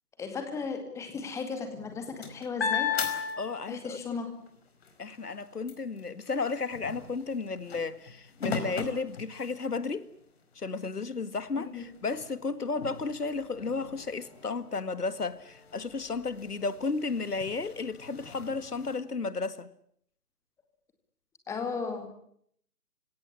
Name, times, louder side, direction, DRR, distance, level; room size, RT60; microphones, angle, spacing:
voice 1, 0.2-2.9 3.7-4.4 11.6-11.8 21.5-22.1, left 5 dB, 5° left, 2.2 m, -35 dB
sound 1, 1.7-4.0 4.5-9.9 10.5-10.6 11.0-19.0, left 6 dB, 40° left, 4.8 m, -38 dB
voice 2, 3.4-4.0 5.0-10.1 10.6-19.7, left 4 dB, 80° left, 2.1 m, -33 dB
28.5 x 17.5 x 9.8 m
figure-of-eight pair, 150°, 46 cm